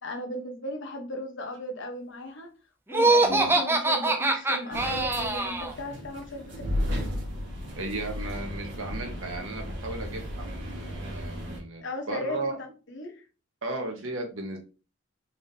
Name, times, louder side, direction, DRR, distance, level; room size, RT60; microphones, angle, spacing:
voice 1, 0.0-2.5 2.9-6.8 11.8-12.4 12.9-13.2, left 1 dB, 65° left, 3 dB, 1.0 m, -36 dB
Laughter, 2.9-5.7, right 2 dB, 10° right, 0.4 m, -23 dB
sound 1, 4.7-11.6, left 1 dB, 70° right, 1.5 m, -34 dB
voice 2, 7.8-12.6 13.6-14.6, right 2 dB, 85° right, 2 dB, 1.3 m, -35 dB
4.6 x 3.6 x 2.7 m, 0.34 s
head